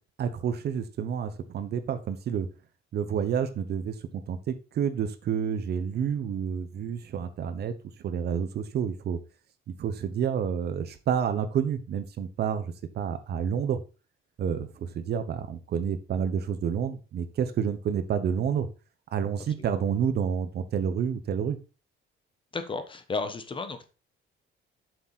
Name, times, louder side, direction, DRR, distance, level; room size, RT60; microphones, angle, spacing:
voice 1, 0.2-2.5 2.9-3.9 4.3-7.7 8.0-9.2 9.8-13.8 14.4-18.7 19.1-21.6, right 7 dB, 55° right, 12 dB, 1.0 m, -29 dB
voice 2, 22.5-23.8, left 4 dB, 25° left, 9 dB, 1.1 m, -33 dB
7.7 x 7.0 x 4.1 m, 0.32 s
cardioid pair, 160°, 21 cm